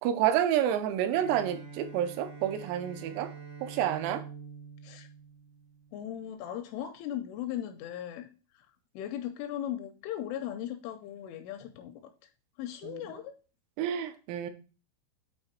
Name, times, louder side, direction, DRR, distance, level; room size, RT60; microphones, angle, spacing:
voice 1, 0.0-3.3 3.6-4.2 12.8-13.0 13.8-14.5, right 10 dB, 90° right, 9 dB, 3.4 m, -29 dB
Bowed string instrument, 1.1-6.0, right 5 dB, 70° right, 1.3 m, -46 dB
voice 2, 5.9-8.3 8.5-8.7 9.0-12.1 12.6-13.3, left 11 dB, 85° left, 7 dB, 2.9 m, -38 dB
8.9 x 3.2 x 4.4 m, 0.35 s
omnidirectional pair, 5.9 m